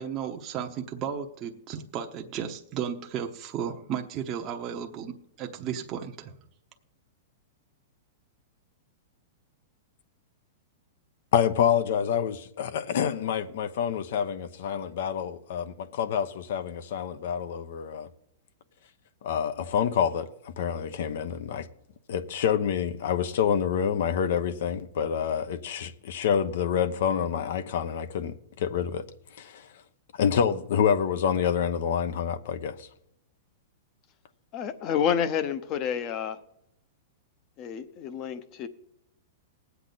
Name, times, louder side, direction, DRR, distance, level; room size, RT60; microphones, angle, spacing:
voice 1, 0.0-6.3, right 8 dB, 30° right, 0.9 m, -34 dB
voice 2, 11.3-18.1 19.2-21.7 22.1-29.0 29.4-29.6 30.2-32.9, left 8 dB, 65° left, 1.0 m, -27 dB
voice 3, 34.5-36.4 37.6-38.7, left 8 dB, 35° left, 0.9 m, -29 dB
19.0 x 8.2 x 4.1 m
hypercardioid pair, 150°, 0 cm